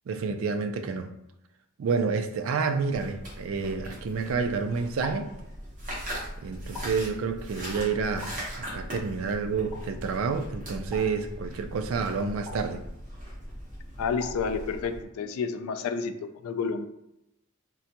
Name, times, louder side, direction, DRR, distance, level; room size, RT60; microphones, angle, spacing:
voice 1, 0.1-1.1 1.8-5.3 6.4-12.8, right 5 dB, 65° right, 0.3 m, -29 dB
sound 1, 2.9-15.0, equal, 35° right, 1.0 m, -40 dB
sound 2, 5.0-5.4 6.7-7.1 8.2-8.6 9.7-10.0 10.9-11.3 12.5-12.8 14.2-14.6, left 2 dB, 5° left, 0.9 m, -43 dB
voice 2, 14.0-16.9, left 5 dB, 75° left, 0.3 m, -30 dB
3.7 x 2.2 x 2.8 m
head